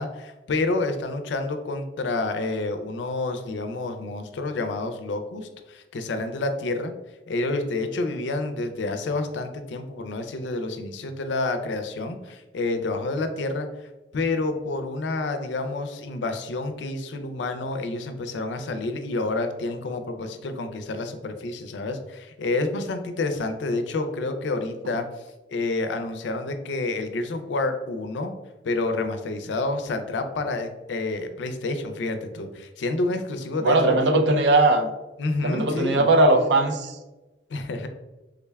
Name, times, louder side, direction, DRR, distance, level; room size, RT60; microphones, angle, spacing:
voice 1, 0.0-6.9 7.3-28.3 28.6-34.0 35.2-36.1 37.5-37.9, left 2 dB, 80° left, 7 dB, 0.4 m, -29 dB
voice 2, 33.6-34.9 35.4-36.9, right 2 dB, 70° right, 6 dB, 0.4 m, -19 dB
3.6 x 2.2 x 3.3 m, 1.1 s
head